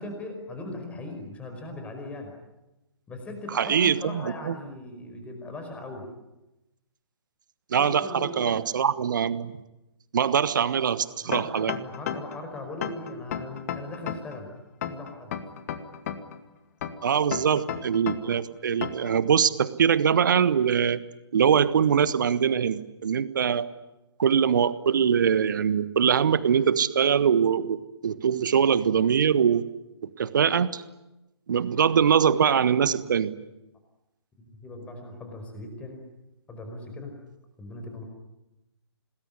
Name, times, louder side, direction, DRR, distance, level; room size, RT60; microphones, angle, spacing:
voice 1, 0.0-2.3 3.1-6.1 7.7-8.6 11.2-14.5 14.8-15.4 34.4-36.0 36.5-37.2 37.6-38.0, left 2 dB, 10° left, 4 dB, 5.2 m, -39 dB
voice 2, 3.5-4.5 7.7-9.6 10.1-11.7 17.0-21.0 21.3-23.7 24.2-29.7 30.0-30.8 31.5-33.3, right 7 dB, 45° right, 15 dB, 1.4 m, -23 dB
sound 1, 11.3-12.4 12.8-14.4 14.8-16.4 16.8-18.4 18.8-19.1, left 9 dB, 35° left, 2.0 m, -33 dB
27.0 x 20.5 x 9.8 m, 0.97 s
figure-of-eight pair, 130°, 14 cm